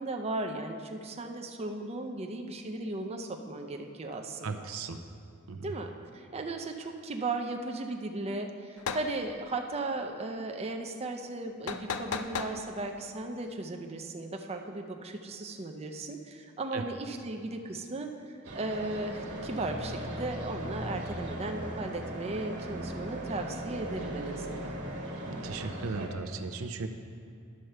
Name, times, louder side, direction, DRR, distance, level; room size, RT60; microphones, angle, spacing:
voice 1, 0.0-4.7 5.6-24.7, right 2 dB, 30° right, 4 dB, 0.5 m, -36 dB
voice 2, 4.4-5.0 5.5-5.7 16.7-16.8 25.3-26.9, right 4 dB, 75° right, 7 dB, 0.5 m, -36 dB
sound 1, 8.8-9.1 11.7-12.6, left 6 dB, 90° left, 0.5 m, -34 dB
sound 2, 18.4-26.1, right 1 dB, 55° right, 1.6 m, -38 dB
11.0 x 4.5 x 6.6 m, 2.4 s
head